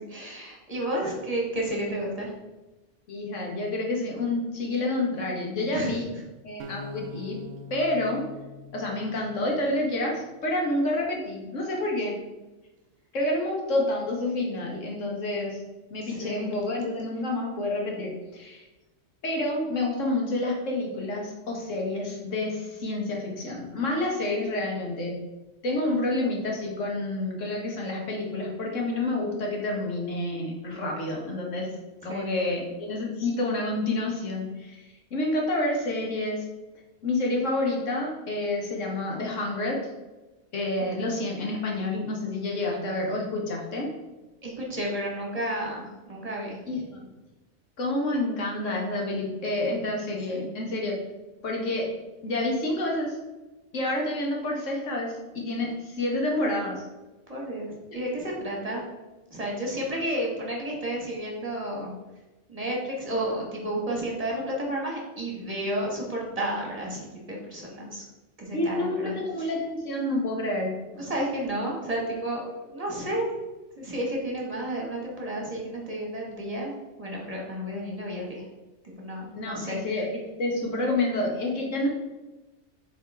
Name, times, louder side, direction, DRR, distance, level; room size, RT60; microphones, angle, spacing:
voice 1, 0.0-2.3 5.7-5.9 16.0-16.6 32.1-32.3 44.4-46.6 50.1-50.5 57.3-58.8 59.3-61.9 62.5-68.0 68.4-69.5 71.0-73.3 73.8-78.4 78.8-79.8, right 1 dB, 30° right, -2 dB, 1.4 m, -32 dB
voice 2, 3.1-6.1 6.4-7.4 7.7-8.2 8.7-12.2 13.1-15.6 15.9-18.7 19.2-25.2 25.6-31.7 32.0-36.4 37.0-39.8 40.5-43.9 46.7-47.1 47.8-50.9 51.4-51.9 52.2-53.2 53.7-56.9 68.5-70.8 79.4-81.9, left 2 dB, 85° left, -1 dB, 1.7 m, -29 dB
sound 1, 6.6-9.8, left 3 dB, 80° right, 0.9 m, -43 dB
7.8 x 3.6 x 3.4 m, 1.1 s
omnidirectional pair, 1.3 m